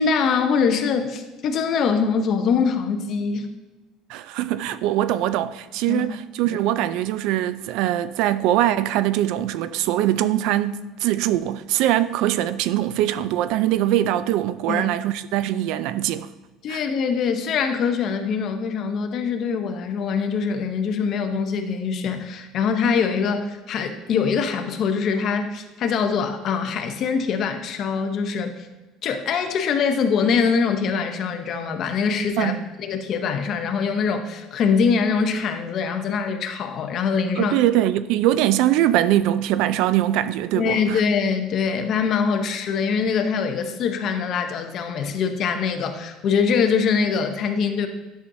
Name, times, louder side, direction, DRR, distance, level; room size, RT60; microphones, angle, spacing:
voice 1, 0.0-3.5 5.9-6.0 14.7-14.9 16.6-28.7 29.0-37.6 40.6-47.9, left 6 dB, 40° left, 0.7 m, -23 dB
voice 2, 4.1-16.3 16.7-16.8 32.4-32.6 37.4-41.0, right 13 dB, 65° right, 0.3 m, -22 dB
10.5 x 6.1 x 2.7 m
cardioid pair, 155°, 0 cm